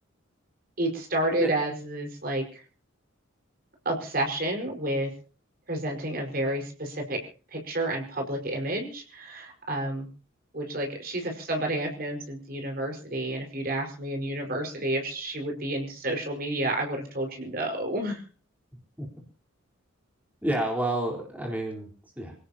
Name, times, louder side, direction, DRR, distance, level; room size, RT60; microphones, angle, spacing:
voice 1, 0.8-2.6 3.8-5.1 5.7-7.2 7.5-10.1 10.5-18.2, right 1 dB, 45° right, 3 dB, 5.1 m, -30 dB
voice 2, 18.7-19.1 20.4-21.9 22.2-22.3, right 1 dB, 10° right, -1 dB, 4.2 m, -29 dB
27.0 x 17.5 x 2.9 m, 0.39 s
head